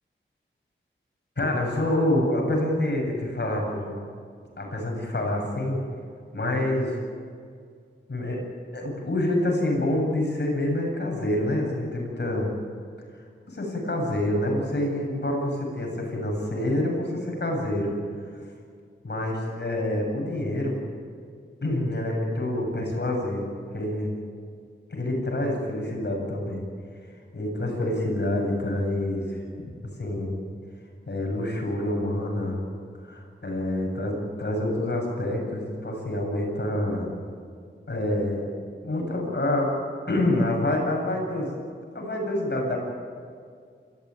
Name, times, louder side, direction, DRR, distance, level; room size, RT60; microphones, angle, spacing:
voice 1, 1.4-3.9 4.6-5.8 6.3-7.0 8.1-8.4 8.7-12.6 13.5-17.9 19.0-20.8 21.6-23.4 23.7-24.2 24.9-26.7 27.3-29.7 30.0-30.4 31.1-32.6 33.0-37.1 37.9-38.5 38.8-39.7 40.1-41.5 41.9-42.8, left 1 dB, 55° left, 0 dB, 8.0 m, -27 dB
28.0 x 15.0 x 9.4 m, 2.2 s
wide cardioid pair, 80°, 21 cm